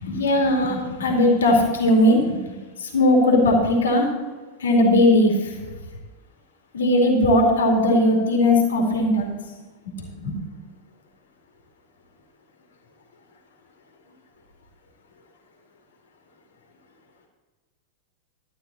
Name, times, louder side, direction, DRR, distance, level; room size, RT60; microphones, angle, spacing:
voice 1, 0.0-2.4 2.8-4.1 4.6-5.6 6.7-9.3 10.0-10.4, left 1 dB, 65° left, 1 dB, 2.5 m, -19 dB
12.5 x 9.6 x 4.2 m, 1.3 s
figure-of-eight pair, 90°, 0 cm